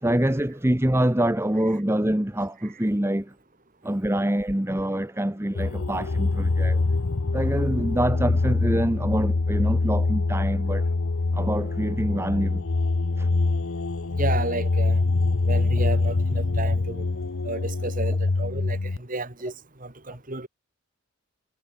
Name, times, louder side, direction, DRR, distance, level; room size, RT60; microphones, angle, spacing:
voice 1, 0.0-3.3 3.8-6.8 7.3-10.9 11.3-12.6 13.2-13.3, right 1 dB, 10° right, 0.9 m, -25 dB
sound 1, 5.6-19.0, left 3 dB, 70° left, 0.8 m, -24 dB
voice 2, 14.1-15.0 15.4-17.1 17.4-19.5 19.8-20.5, right 2 dB, 35° right, 2.1 m, -32 dB
head